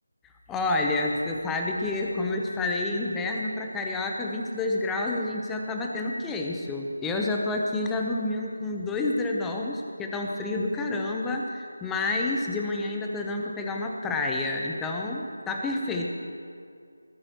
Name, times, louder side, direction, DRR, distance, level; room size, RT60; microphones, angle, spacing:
voice 1, 0.5-16.1, left 2 dB, 5° left, 1 dB, 0.9 m, -29 dB
20.0 x 15.0 x 3.1 m, 2.3 s
figure-of-eight pair, 160°, 0 cm